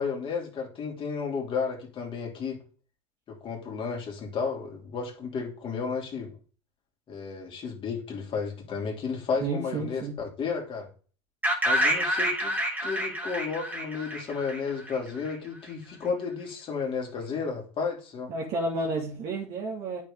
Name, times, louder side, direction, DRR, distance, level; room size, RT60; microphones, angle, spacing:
voice 1, 0.0-2.6 3.3-6.3 7.1-10.9 11.6-12.5 12.8-18.3, left 5 dB, 35° left, 2.9 m, -32 dB
voice 2, 9.4-10.1 18.3-20.0, right 2 dB, 50° right, 2.7 m, -31 dB
sound 1, 11.4-15.3, equal, 10° right, 2.7 m, -28 dB
8.9 x 6.2 x 3.8 m
hypercardioid pair, 100°, 15 cm